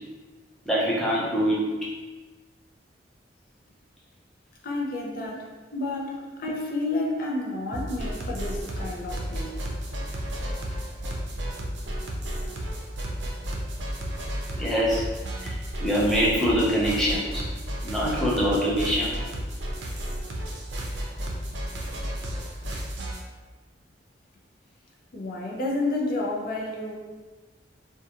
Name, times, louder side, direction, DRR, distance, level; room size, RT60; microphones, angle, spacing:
voice 1, 0.7-1.7 14.6-15.0 15.4-15.5 15.8-17.4 17.8-19.1, equal, ahead, -7 dB, 0.6 m, -24 dB
voice 2, 4.6-9.6 25.1-27.0, left 2 dB, 55° left, -2 dB, 0.5 m, -30 dB
sound 1, 7.7-23.2, equal, 75° right, 0.5 m, -33 dB
2.4 x 2.2 x 2.8 m, 1.3 s
head